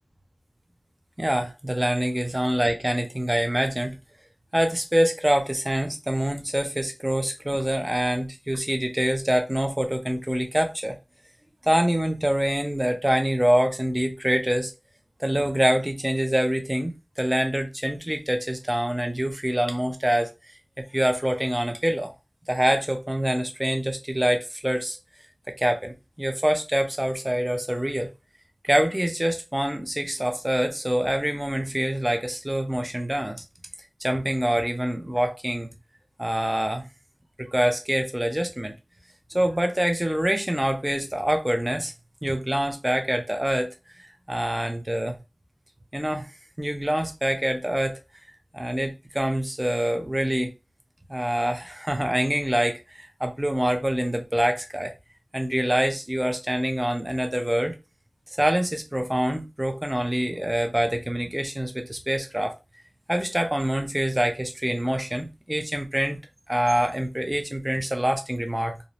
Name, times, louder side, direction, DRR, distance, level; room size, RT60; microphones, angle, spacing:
voice 1, 1.2-3.9 4.5-11.0 11.6-14.7 15.2-20.3 20.9-22.1 22.5-25.0 25.6-28.1 28.6-33.4 34.0-35.7 36.2-36.9 37.4-38.7 39.3-41.9 42.2-43.7 44.0-45.2 45.9-46.3 46.6-48.0 48.5-50.5 51.1-54.9 55.3-57.8 58.4-62.5 63.1-66.2 66.5-68.8, right 1 dB, 15° right, 0.6 m, -25 dB
2.5 x 2.0 x 2.9 m
wide cardioid pair, 55°, 0 cm